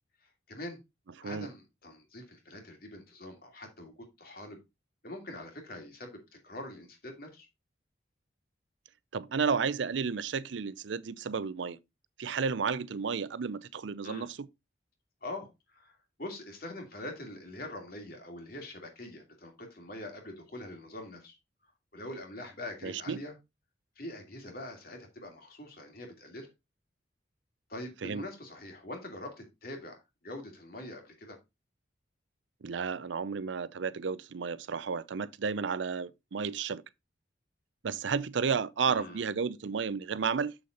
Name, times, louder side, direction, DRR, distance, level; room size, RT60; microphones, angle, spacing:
voice 1, 0.5-0.8 1.2-4.6 5.0-6.2 6.4-7.5 14.0-14.3 15.2-21.3 21.9-23.3 24.0-26.5 27.7-31.4 38.9-39.2, left 1 dB, 50° left, 2.6 m, -44 dB
voice 2, 9.1-11.8 12.2-14.4 22.8-23.2 28.0-28.3 32.6-36.8 37.8-40.6, right 5 dB, 75° right, 0.5 m, -32 dB
7.3 x 6.5 x 3.9 m
head